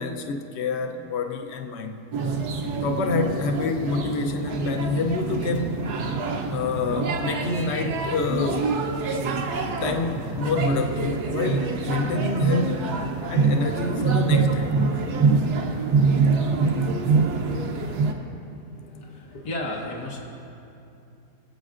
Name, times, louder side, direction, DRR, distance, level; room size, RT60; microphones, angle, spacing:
voice 1, 0.0-2.1 2.8-5.8 6.5-8.8 9.8-13.0 13.3-14.8, left 4 dB, 60° left, 5 dB, 0.7 m, -27 dB
sound 1, 2.1-18.1, right 4 dB, 75° right, 1.3 m, -25 dB
voice 2, 18.7-20.2, left 1 dB, 85° left, -2 dB, 1.8 m, -33 dB
24.0 x 8.4 x 2.5 m, 2.7 s
omnidirectional pair, 1.7 m